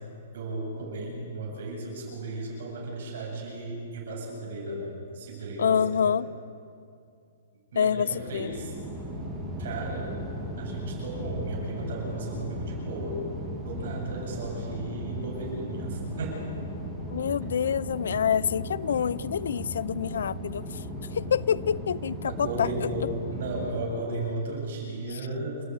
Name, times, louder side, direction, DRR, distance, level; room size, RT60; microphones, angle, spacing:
voice 1, 0.3-6.2 7.7-8.7 9.6-10.1 10.6-13.2 13.6-16.5 22.3-25.6, right 2 dB, 55° right, -1 dB, 8.0 m, -35 dB
voice 2, 5.6-6.3 7.7-8.5 17.1-20.8 21.1-22.7 25.1-25.2, left 7 dB, 75° left, 19 dB, 0.6 m, -27 dB
sound 1, 8.1-23.8, equal, 5° right, 3.2 m, -37 dB
29.5 x 13.5 x 9.4 m, 2.4 s
hypercardioid pair, 175°, 0 cm